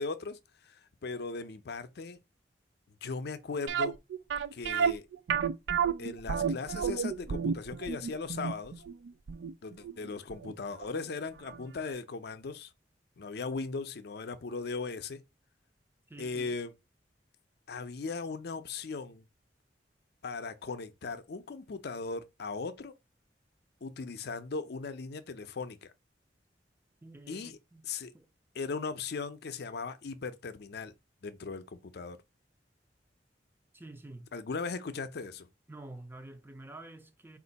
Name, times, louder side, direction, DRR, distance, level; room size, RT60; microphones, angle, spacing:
voice 1, 0.0-2.2 3.0-4.0 4.5-5.1 6.0-8.8 9.6-12.7 13.2-15.2 16.2-16.7 17.7-19.3 20.2-22.9 23.8-25.9 27.3-27.6 27.8-28.1 28.5-30.9 31.2-32.2 34.3-35.5, left 4 dB, 65° left, 0.5 m, -38 dB
sound 1, 3.7-10.5 10.8-10.9 11.5-11.6 11.9-12.0, right 6 dB, 90° right, 0.4 m, -31 dB
voice 2, 16.1-16.6 27.0-27.9 28.1-28.3 33.7-34.3 35.7-37.4, right 2 dB, 15° right, 0.5 m, -48 dB
4.3 x 2.5 x 3.9 m
head